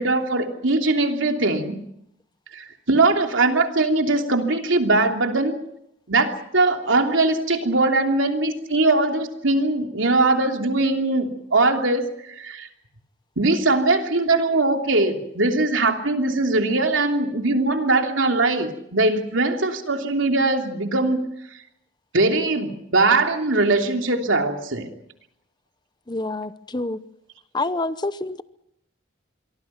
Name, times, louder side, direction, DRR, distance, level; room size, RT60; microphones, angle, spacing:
voice 1, 0.0-1.7 2.5-5.6 6.1-12.7 13.4-21.3 22.1-24.9, right 2 dB, 85° right, 4 dB, 3.1 m, -21 dB
voice 2, 26.1-27.0 27.5-28.4, left 2 dB, 20° left, 14 dB, 0.8 m, -27 dB
26.5 x 23.0 x 5.9 m, 0.76 s
head